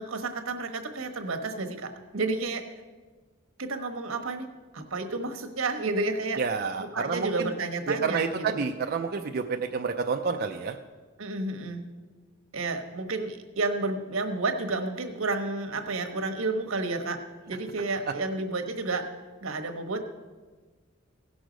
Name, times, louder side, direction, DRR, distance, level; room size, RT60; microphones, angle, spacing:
voice 1, 0.0-2.6 3.6-4.5 4.7-6.4 6.8-8.6 11.2-11.8 12.5-17.2 17.5-19.1 19.4-20.1, right 3 dB, 80° right, 5 dB, 1.2 m, -31 dB
voice 2, 6.4-7.5 8.0-10.8, right 5 dB, 45° right, 4 dB, 0.5 m, -29 dB
17.0 x 6.3 x 5.1 m, 1.4 s
head